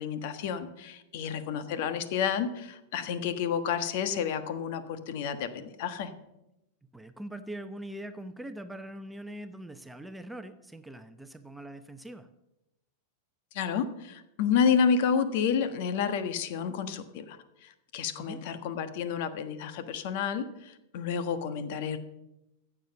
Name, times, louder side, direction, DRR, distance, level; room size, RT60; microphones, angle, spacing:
voice 1, 0.0-6.1 13.5-22.0, left 7 dB, 60° left, 10 dB, 1.4 m, -30 dB
voice 2, 6.9-12.3 18.1-18.4, right 1 dB, 5° right, 9 dB, 0.9 m, -42 dB
14.5 x 7.5 x 7.0 m, 0.91 s
hypercardioid pair, 105°, 0 cm